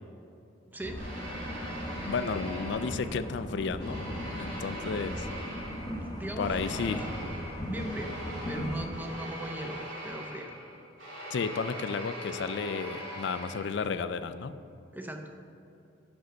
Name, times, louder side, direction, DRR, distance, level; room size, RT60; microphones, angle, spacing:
voice 1, 0.7-1.1 4.4-4.6 5.8-7.1 7.7-8.1 8.5-10.5 14.9-15.3, right 1 dB, 10° right, 4 dB, 0.6 m, -39 dB
sound 1, 0.8-8.9, equal, 20° left, 1.1 m, -38 dB
sound 2, 1.0-3.4 3.8-14.1, equal, 80° right, 2.2 m, -41 dB
voice 2, 2.0-4.0 4.3-5.3 6.4-7.0 11.3-14.6, left 5 dB, 65° left, 12 dB, 0.4 m, -32 dB
8.2 x 6.3 x 6.2 m, 2.7 s
head